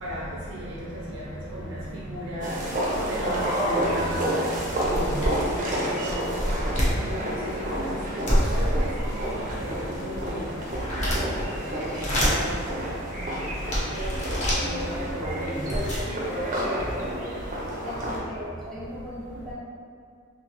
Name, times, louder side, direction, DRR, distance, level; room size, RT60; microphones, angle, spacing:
voice 1, 2.1-2.5 3.0-4.4 4.8-5.2 5.8-6.1 7.1-7.3 7.7-7.9 8.5-8.9 9.2-9.3 9.6-10.3 11.0-11.1 11.6-12.5 14.5-14.8, equal, 80° right, -6 dB, 0.6 m, -33 dB
sound 1, 2.4-18.2, right 1 dB, 40° right, 0.5 m, -30 dB
sound 2, 4.6-5.6 6.1-7.0 8.3-9.3 9.9-11.4 11.8-12.5 13.1-13.2 13.7-14.6 15.3-15.4 15.6-16.0, equal, 35° left, 0.8 m, -26 dB
voice 2, 16.5-17.4 17.7-19.5, equal, ahead, -10 dB, 0.8 m, -39 dB
2.9 x 2.8 x 2.9 m, 2.2 s
head